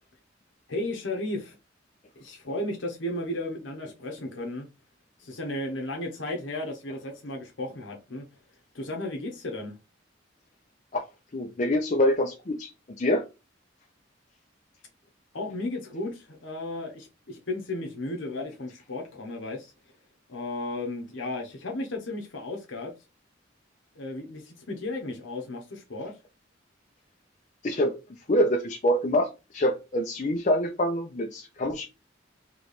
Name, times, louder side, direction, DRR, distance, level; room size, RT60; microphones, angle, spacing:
voice 1, 0.7-1.6 2.2-4.7 5.2-8.2 8.7-9.8 15.3-19.7 20.3-22.9 23.9-26.1, left 2 dB, 80° left, 0.9 m, -34 dB
voice 2, 11.3-12.7 13.0-13.2 27.6-28.0 28.3-29.3 29.5-31.9, left 1 dB, 40° left, 0.5 m, -25 dB
3.3 x 3.0 x 4.0 m
head